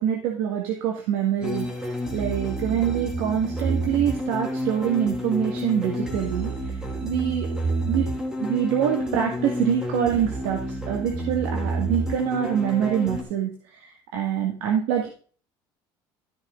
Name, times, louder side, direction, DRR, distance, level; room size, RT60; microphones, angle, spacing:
voice 1, 0.0-1.7 2.1-6.5 7.0-7.5 7.8-8.1 8.4-10.6 10.9-15.1, right 9 dB, 80° right, 2 dB, 1.9 m, -25 dB
sound 1, 1.4-13.2, right 1 dB, 5° right, 3.3 m, -29 dB
14.0 x 6.0 x 3.8 m, 0.41 s
cardioid pair, 150°, 10 cm